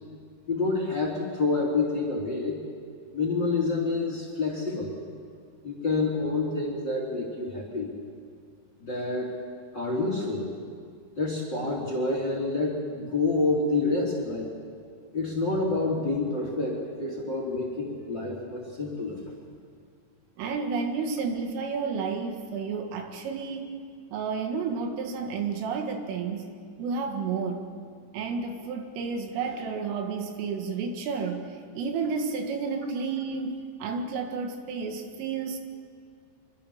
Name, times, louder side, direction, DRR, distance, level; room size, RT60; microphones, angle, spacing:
voice 1, 0.5-2.6 3.1-4.9 5.6-7.9 8.8-9.3 9.7-10.5 11.2-14.5 15.1-19.3, left 3 dB, 25° left, 0 dB, 3.1 m, -28 dB
voice 2, 20.4-23.7 24.1-26.5 26.8-27.6 28.1-35.6, right 5 dB, 75° right, 4 dB, 4.3 m, -31 dB
26.0 x 24.0 x 7.2 m, 2.2 s
omnidirectional pair, 6.0 m